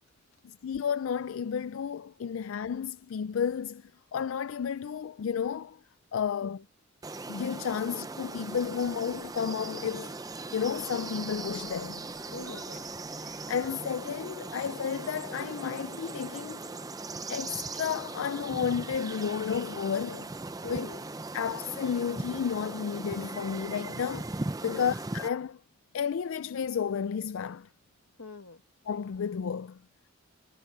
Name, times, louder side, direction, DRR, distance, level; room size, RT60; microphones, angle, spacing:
voice 1, 0.4-5.8 6.1-6.6 7.3-10.2 10.5-12.0 13.1-16.8 17.3-20.3 20.7-20.9 21.3-25.6 25.9-27.7 28.9-29.8, left 7 dB, 70° left, 0.4 m, -32 dB
sound 1, 7.0-25.3, right 2 dB, 15° right, 0.6 m, -39 dB
Fowl, 8.5-14.8 15.2-15.4, left 1 dB, 10° left, 6.2 m, -60 dB
voice 2, 12.3-12.9 20.6-21.1 24.7-24.9 28.2-28.6, left 3 dB, 90° left, 1.9 m, -42 dB
head